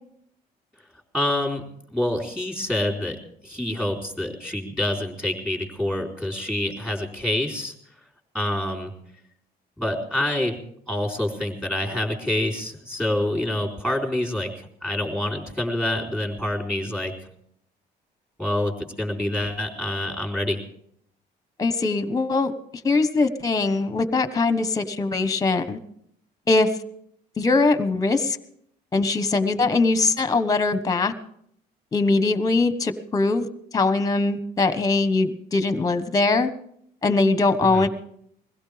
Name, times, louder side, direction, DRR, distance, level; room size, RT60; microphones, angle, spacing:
voice 1, 1.1-1.6 1.9-3.2 3.4-7.7 8.3-8.9 9.8-10.6 10.9-17.1 18.4-20.6 37.6-37.9, left 1 dB, 5° right, -1 dB, 3.7 m, -27 dB
voice 2, 21.6-22.5 22.8-25.8 26.5-26.7 27.4-28.4 28.9-31.1 31.9-33.5 33.7-36.5 37.0-37.9, left 3 dB, 20° left, 11 dB, 1.2 m, -21 dB
22.0 x 16.0 x 3.5 m, 0.69 s
cardioid pair, 110°, 17 cm